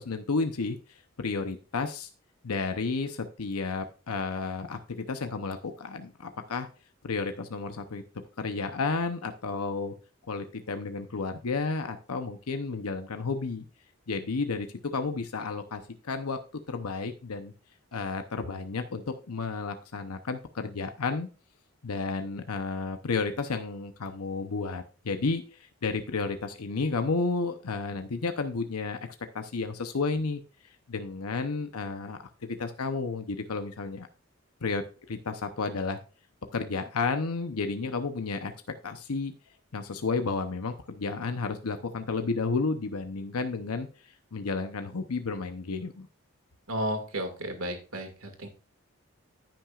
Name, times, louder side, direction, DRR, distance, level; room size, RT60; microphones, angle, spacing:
voice 1, 0.0-2.1 2.4-6.7 7.0-8.0 8.4-9.9 10.3-13.7 14.1-14.7 14.9-16.4 16.7-17.5 17.9-21.3 21.8-29.1 29.3-30.4 30.9-32.2 32.5-34.1 34.6-36.0 36.5-38.5 38.8-39.3 39.7-43.9 44.3-46.1, left 4 dB, 90° left, 7 dB, 0.8 m, -32 dB
voice 2, 46.7-48.5, right 1 dB, 75° right, 5 dB, 2.0 m, -33 dB
14.5 x 6.1 x 2.4 m, 0.36 s
head